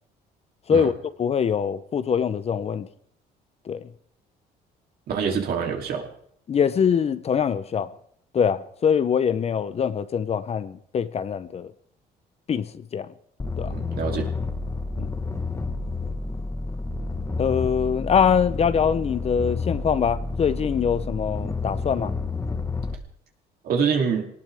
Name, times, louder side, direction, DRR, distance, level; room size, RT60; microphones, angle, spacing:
voice 1, 0.7-2.9 3.7-3.9 6.5-7.9 8.3-11.7 12.5-13.1 13.6-13.7 15.0-15.1 17.4-22.1, left 7 dB, 40° left, 0.7 m, -23 dB
voice 2, 5.1-6.1 13.7-14.3 23.6-24.2, right 6 dB, 65° right, 3.1 m, -25 dB
sound 1, 13.4-22.9, left 3 dB, 15° left, 1.2 m, -30 dB
21.0 x 18.5 x 3.5 m
cardioid pair, 110°, 17 cm